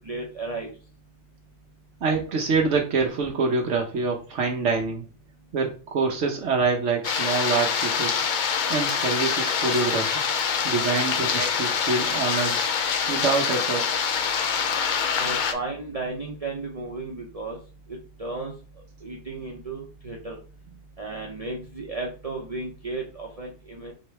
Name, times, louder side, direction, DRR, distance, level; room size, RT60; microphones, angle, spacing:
voice 1, 0.0-0.7 15.2-17.6 17.9-18.5 19.0-20.4 21.0-23.9, right 3 dB, 35° right, -1 dB, 0.8 m, -34 dB
voice 2, 2.0-5.1 5.5-8.3 8.7-10.1 10.6-12.6 13.1-14.0, right 4 dB, 85° right, 1 dB, 1.1 m, -25 dB
sound 1, 7.0-15.5, left 6 dB, 55° left, 0.6 m, -25 dB
3.8 x 3.0 x 4.5 m, 0.36 s
omnidirectional pair, 1.2 m